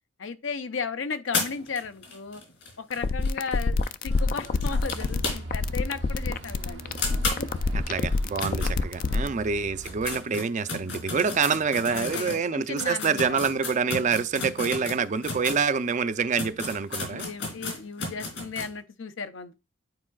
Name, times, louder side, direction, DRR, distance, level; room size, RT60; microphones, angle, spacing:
voice 1, 0.2-2.4 2.8-3.8 4.0-7.0 7.4-7.5 8.4-8.7 9.0-9.5 11.9-13.6 15.2-15.3 17.1-19.6, left 5 dB, 90° left, 0.7 m, -35 dB
sound 1, 1.3-5.7 6.0-6.1 6.4-6.5 7.0-9.3 9.7-15.6 16.1-16.2 16.4-18.7, left 3 dB, 75° left, 3.0 m, -34 dB
sound 2, 2.9-9.3, left 3 dB, 45° left, 0.4 m, -26 dB
sound 3, 4.1-10.2, right 2 dB, 75° right, 0.8 m, -41 dB
voice 2, 7.7-17.3, right 5 dB, 40° right, 0.4 m, -26 dB
9.6 x 4.7 x 2.3 m
head